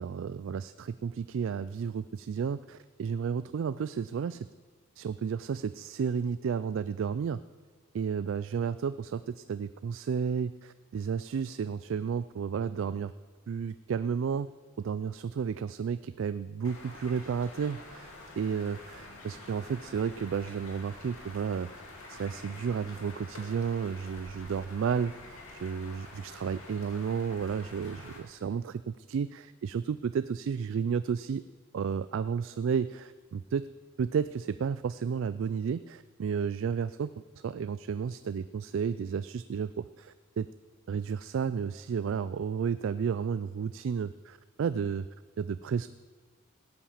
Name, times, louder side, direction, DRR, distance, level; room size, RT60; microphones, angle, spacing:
voice 1, 0.0-4.5 5.0-7.4 7.9-13.1 13.5-14.5 14.8-21.7 22.1-31.4 31.7-33.7 34.0-37.1 37.4-40.5 40.9-45.1 45.4-45.9, right 6 dB, 65° right, 14 dB, 0.3 m, -32 dB
sound 1, 16.6-28.2, left 2 dB, 85° left, 2.4 m, -48 dB
16.0 x 8.7 x 7.2 m, 1.5 s
head